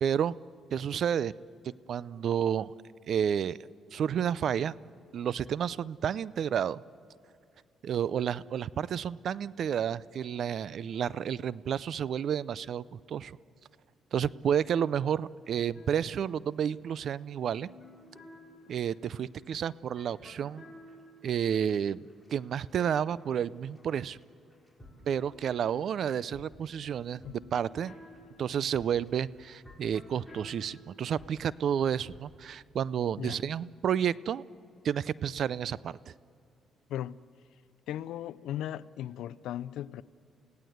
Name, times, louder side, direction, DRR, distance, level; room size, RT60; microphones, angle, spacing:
voice 1, 0.0-0.3 0.7-1.3 1.9-2.7 3.1-3.6 3.9-4.7 5.1-6.8 7.8-13.4 14.1-17.7 18.7-20.6 21.2-22.1 22.3-24.2 25.1-27.9 28.4-34.4 34.8-36.0, right 8 dB, 60° right, 0.5 m, -30 dB
sound 1, 15.4-24.2 24.5-32.3, equal, ahead, 5.0 m, -54 dB
voice 2, 36.9-37.2 37.9-40.0, left 12 dB, 85° left, 0.5 m, -37 dB
29.0 x 16.5 x 8.0 m
cardioid pair, 100°, 0 cm